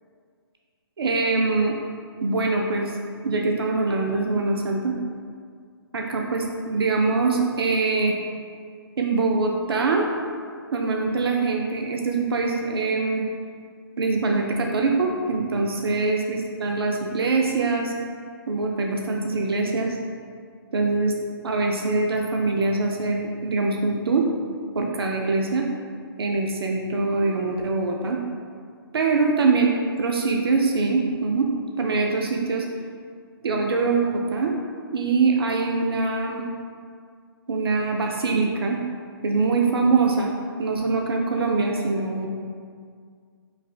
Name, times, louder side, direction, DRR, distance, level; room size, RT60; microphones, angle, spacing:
voice 1, 1.0-1.8 2.2-3.0 3.2-4.9 5.9-8.2 9.0-10.1 10.7-13.2 14.0-17.9 18.5-20.0 20.7-21.1 21.4-24.3 24.7-25.7 26.2-28.2 28.9-29.7 30.0-31.5 31.8-32.7 33.4-34.6 34.9-36.4 37.5-38.8 39.2-40.3 40.6-42.3, right 3 dB, 70° right, 1 dB, 0.4 m, -23 dB
4.8 x 2.1 x 2.3 m, 2.1 s
hypercardioid pair, 140°, 13 cm